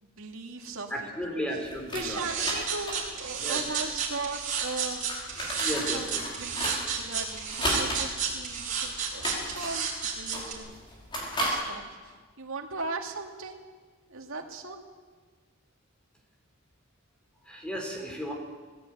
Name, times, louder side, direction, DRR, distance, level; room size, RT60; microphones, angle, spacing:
voice 1, 0.0-1.4 1.9-5.1 5.9-6.0 6.4-10.8 11.4-13.6 14.1-14.8, right 3 dB, 70° right, 2 dB, 2.5 m, -38 dB
voice 2, 0.9-2.4 3.4-3.6 5.5-6.3 17.4-18.3, equal, 5° left, 1 dB, 4.1 m, -35 dB
sound 1, 1.6-11.5, equal, 25° left, 5.6 m, -36 dB
sound 2, 2.1-10.5, right 7 dB, 40° right, 4.9 m, -31 dB
20.0 x 15.5 x 9.2 m, 1.5 s
head